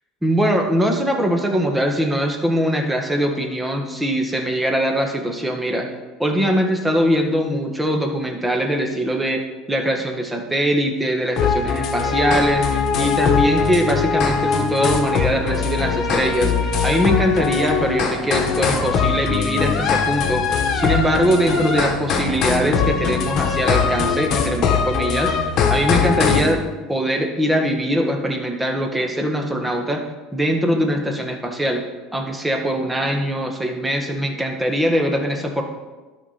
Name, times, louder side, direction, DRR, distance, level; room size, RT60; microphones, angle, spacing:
voice 1, 0.2-5.9 6.2-9.4 9.7-16.5 16.8-26.6 26.9-30.0 30.3-31.8 32.1-35.6, equal, 10° right, 3 dB, 1.6 m, -22 dB
sound 1, 11.4-26.5, left 6 dB, 50° left, 1.3 m, -21 dB
11.5 x 5.6 x 4.3 m, 1.2 s
hypercardioid pair, 80°, 0 cm